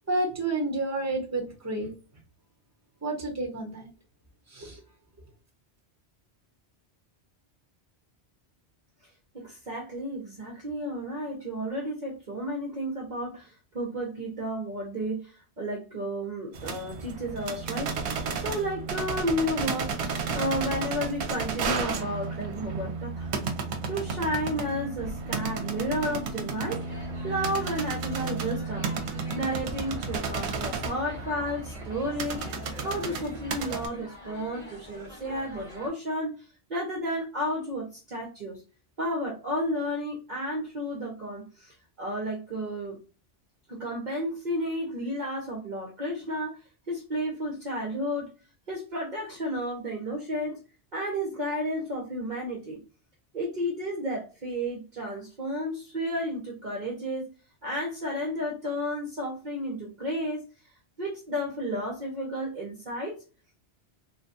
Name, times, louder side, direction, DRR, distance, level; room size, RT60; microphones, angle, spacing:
voice 1, 0.1-1.9 3.0-3.9 4.5-4.8, right 2 dB, 15° right, 0 dB, 0.9 m, -30 dB
voice 2, 9.3-23.3 23.9-26.8 27.2-32.5 32.8-36.4 36.7-38.6 39.0-43.0 43.7-46.6 46.9-48.3 48.7-50.6 50.9-52.8 53.3-57.3 57.6-60.4 61.0-63.2, equal, 50° right, -2 dB, 0.8 m, -32 dB
sound 1, 16.5-33.9, right 4 dB, 75° right, 0.9 m, -33 dB
sound 2, 26.7-35.9, left 1 dB, 40° left, 1.2 m, -46 dB
3.2 x 2.2 x 2.6 m, 0.34 s
omnidirectional pair, 1.1 m